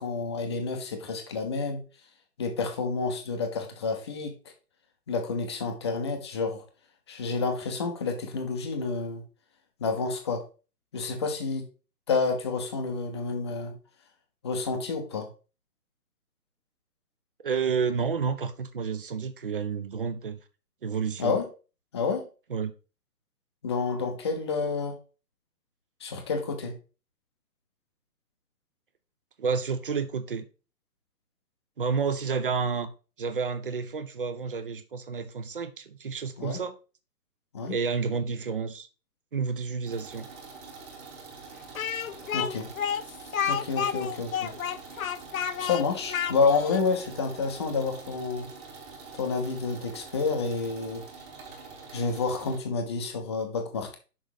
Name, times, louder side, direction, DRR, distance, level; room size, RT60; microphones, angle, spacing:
voice 1, 0.0-1.8 2.4-4.3 5.1-6.6 7.1-9.2 9.8-10.4 10.9-11.7 12.1-13.7 14.4-15.3 21.2-21.5 21.9-22.3 23.6-25.0 26.0-26.7 36.4-36.6 37.5-37.8 42.3-42.7 43.5-44.5 45.6-48.5 49.1-51.0 51.9-54.0, left 4 dB, 15° left, 0.7 m, -29 dB
voice 2, 17.4-20.4 20.8-21.4 22.5-22.7 29.4-30.4 31.8-32.9 33.2-36.7 37.7-38.9 39.3-40.3, right 5 dB, 35° right, 0.6 m, -30 dB
sound 1, 39.9-52.6, right 4 dB, 15° right, 1.3 m, -45 dB
Speech, 41.7-46.8, left 8 dB, 60° left, 0.6 m, -30 dB
6.1 x 5.3 x 4.9 m
figure-of-eight pair, 140°, 48 cm